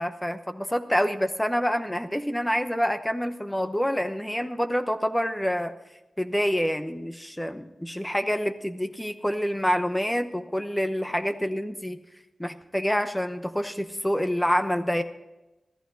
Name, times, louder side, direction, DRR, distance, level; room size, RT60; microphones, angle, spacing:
voice 1, 0.0-5.7 6.2-12.0 12.4-15.0, equal, 10° left, 9 dB, 0.9 m, -27 dB
14.5 x 14.0 x 4.0 m, 1.0 s
wide cardioid pair, 105°, 0 cm